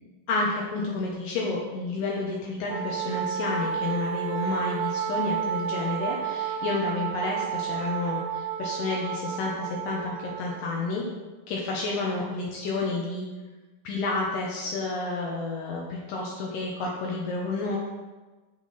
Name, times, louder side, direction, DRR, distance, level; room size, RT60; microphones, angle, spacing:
voice 1, 0.3-11.0 11.5-13.3 13.8-17.8, left 3 dB, 75° left, -2 dB, 2.6 m, -30 dB
Wind instrument woodwind instrument, 2.7-10.7, right 8 dB, 85° right, 1.7 m, -31 dB
8.3 x 6.2 x 4.2 m, 1.2 s
omnidirectional pair, 4.1 m